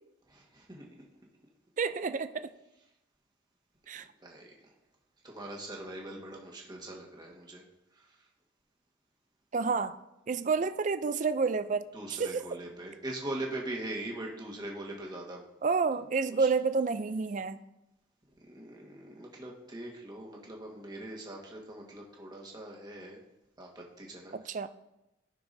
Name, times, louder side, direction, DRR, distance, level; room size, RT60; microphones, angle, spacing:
voice 1, 0.3-0.8 4.2-4.5 5.2-7.6 7.9-8.1 11.9-15.4 16.4-16.5 18.4-23.2 23.6-24.3, right 1 dB, 20° right, -1 dB, 1.5 m, -41 dB
voice 2, 1.8-2.5 3.9-4.1 9.5-10.0 10.3-12.6 15.6-17.6 24.3-24.7, right 4 dB, 40° right, 12 dB, 0.4 m, -29 dB
15.0 x 5.9 x 2.7 m, 0.93 s
head